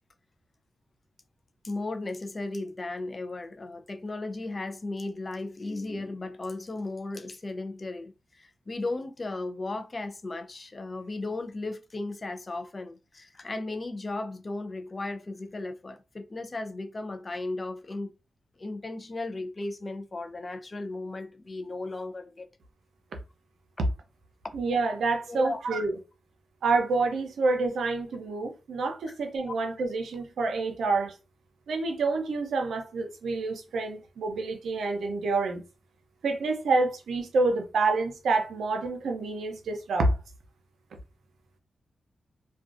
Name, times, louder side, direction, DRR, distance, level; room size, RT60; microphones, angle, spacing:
voice 1, 1.6-18.1 18.6-22.5 25.3-25.6 29.5-29.6, left 2 dB, 45° left, 0.4 m, -35 dB
voice 2, 24.5-26.0 26.6-31.1 31.7-35.6 36.2-40.2, right 3 dB, 85° right, 0.5 m, -27 dB
2.4 x 2.2 x 2.4 m
cardioid pair, 50°, 0 cm